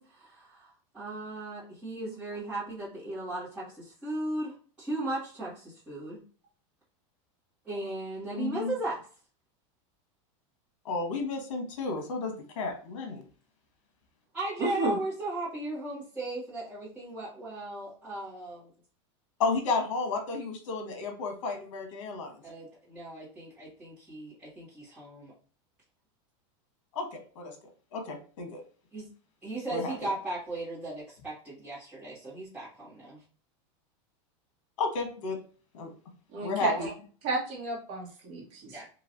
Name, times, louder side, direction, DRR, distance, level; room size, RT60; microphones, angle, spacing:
voice 1, 0.0-6.2 7.6-9.0 14.3-18.7 22.4-25.3 28.9-29.0 29.4-33.2 38.7-38.9, right 2 dB, 10° right, -14 dB, 1.5 m, -37 dB
voice 2, 8.3-8.7 10.8-13.2 19.4-22.4 26.9-27.6 27.9-28.6 29.7-29.9 34.8-35.4 35.7-35.9 36.4-36.9, left 3 dB, 85° left, 4 dB, 1.1 m, -32 dB
voice 3, 14.6-14.9 36.3-36.9 37.2-38.6, right 3 dB, 40° right, -4 dB, 1.4 m, -31 dB
3.1 x 2.9 x 2.6 m, 0.40 s
supercardioid pair, 170°, 16 cm